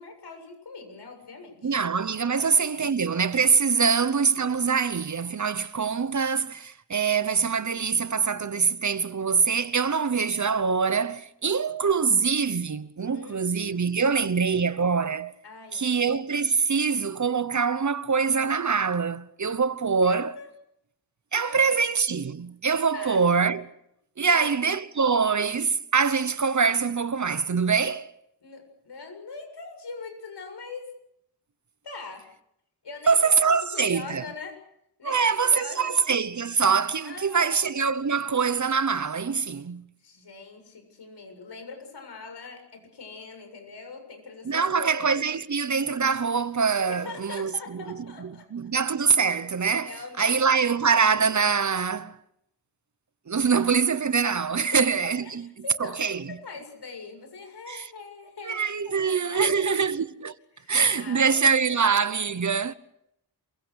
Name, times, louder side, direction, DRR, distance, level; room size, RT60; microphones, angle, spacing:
voice 1, 0.0-1.7 2.2-2.8 3.8-3.9 13.1-14.2 15.4-16.0 20.0-20.5 21.4-21.8 22.9-23.2 24.2-24.6 28.4-31.0 31.8-32.3 32.8-34.6 35.0-36.0 37.0-37.7 40.0-45.3 46.9-48.4 49.8-50.4 54.6-59.8 60.5-62.0, left 4 dB, 75° left, 7.6 m, -42 dB
voice 2, 1.6-15.3 15.7-20.3 21.3-23.7 24.2-28.1 33.1-34.2 35.0-39.9 44.5-47.9 48.2-49.9 50.2-52.1 53.3-55.4 55.8-56.2 57.7-57.9 58.4-60.3 60.7-62.7, right 5 dB, 45° right, 1.0 m, -24 dB
28.0 x 23.0 x 6.4 m
wide cardioid pair, 125°, 41 cm